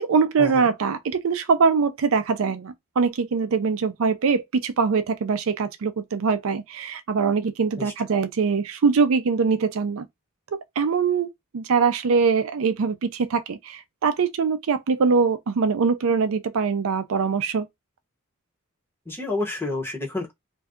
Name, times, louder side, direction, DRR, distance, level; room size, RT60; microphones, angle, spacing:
voice 1, 0.0-10.1 10.8-11.3 11.5-17.7, right 5 dB, 65° right, 0.4 m, -22 dB
voice 2, 19.1-20.3, left 2 dB, 10° left, 0.9 m, -29 dB
2.6 x 2.3 x 3.5 m
head